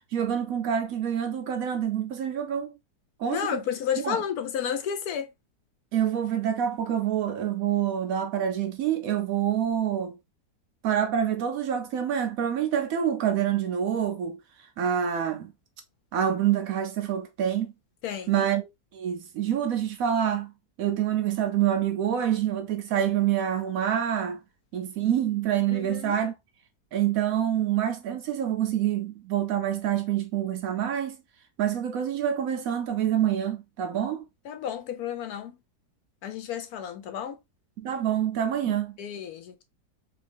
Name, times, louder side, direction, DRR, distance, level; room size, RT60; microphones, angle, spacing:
voice 1, 0.1-2.7 3.2-3.6 4.0-4.2 5.9-10.2 10.8-14.4 14.8-15.5 16.1-17.7 18.3-20.5 20.8-24.4 24.7-26.3 26.9-31.2 31.6-34.2 37.8-39.0, right 9 dB, 70° right, 0.9 m, -26 dB
voice 2, 3.3-5.3 18.0-18.5 25.7-26.2 34.4-35.6 36.2-37.4 38.7-39.6, left 8 dB, 70° left, 1.1 m, -32 dB
3.0 x 2.7 x 3.2 m
omnidirectional pair, 1.7 m